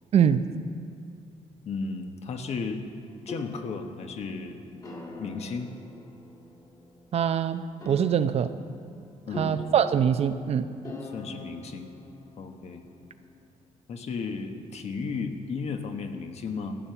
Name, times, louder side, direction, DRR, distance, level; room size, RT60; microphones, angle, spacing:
voice 1, 0.1-0.4 7.1-8.5 9.4-10.7, right 8 dB, 50° right, 11 dB, 0.6 m, -23 dB
voice 2, 1.6-2.8 3.3-4.6 5.2-5.7 9.3-9.6 11.0-11.9 12.4-12.8 13.9-16.8, left 4 dB, 55° left, 6 dB, 1.3 m, -34 dB
sound 1, 2.9-13.5, left 2 dB, 30° left, 2.0 m, -44 dB
14.0 x 9.3 x 7.0 m, 2.2 s
cardioid pair, 115°, 13 cm